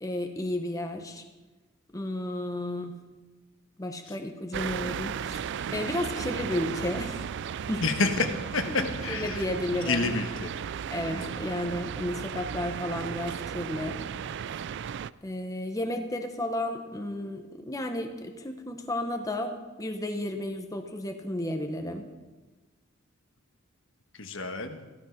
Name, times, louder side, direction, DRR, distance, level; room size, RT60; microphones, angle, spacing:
voice 1, 0.0-1.2 1.9-2.9 3.8-5.4 5.7-7.2 7.7-7.8 8.6-10.2 10.9-14.0 15.2-22.1, left 1 dB, 15° left, 4 dB, 1.1 m, -33 dB
sound 1, 4.5-15.1, right 7 dB, 60° right, 0.3 m, -35 dB
voice 2, 7.8-8.3 8.5-8.6 9.0-9.4 9.9-10.5 11.1-11.3 24.2-24.8, left 4 dB, 65° left, 6 dB, 1.3 m, -29 dB
15.0 x 12.5 x 5.8 m, 1.2 s
head